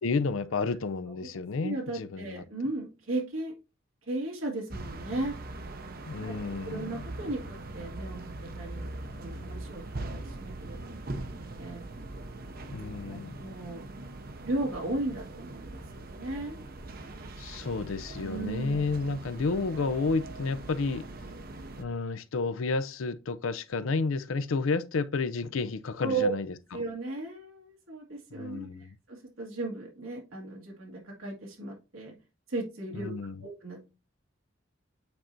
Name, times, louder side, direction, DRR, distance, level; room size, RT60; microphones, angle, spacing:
voice 1, 0.0-2.4 6.1-7.1 12.7-13.5 17.4-21.0 21.8-26.5 28.3-28.9 32.9-33.5, left 4 dB, 80° left, 0.5 m, -31 dB
voice 2, 1.6-3.5 4.1-5.4 6.1-8.9 9.2-11.8 12.6-12.7 13.0-13.9 14.4-16.7 18.2-18.8 26.0-26.3 26.7-32.1 32.5-33.1 33.4-33.9, right 2 dB, 85° right, 1.8 m, -36 dB
sound 1, 4.7-21.8, right 2 dB, 45° right, 0.7 m, -41 dB
8.7 x 4.4 x 2.6 m
head